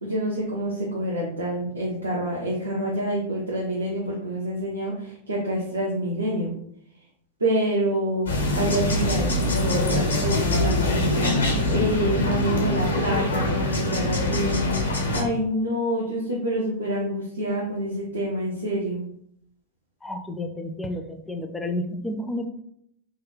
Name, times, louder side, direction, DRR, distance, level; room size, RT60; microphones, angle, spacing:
voice 1, 0.0-6.5 7.4-19.0, right 1 dB, 80° right, -4 dB, 0.6 m, -27 dB
sound 1, 8.3-15.2, left 1 dB, 75° left, 0.6 m, -24 dB
voice 2, 20.0-22.5, left 1 dB, 10° left, 5 dB, 0.3 m, -31 dB
3.7 x 2.1 x 2.4 m, 0.70 s
figure-of-eight pair, 90°, 0 cm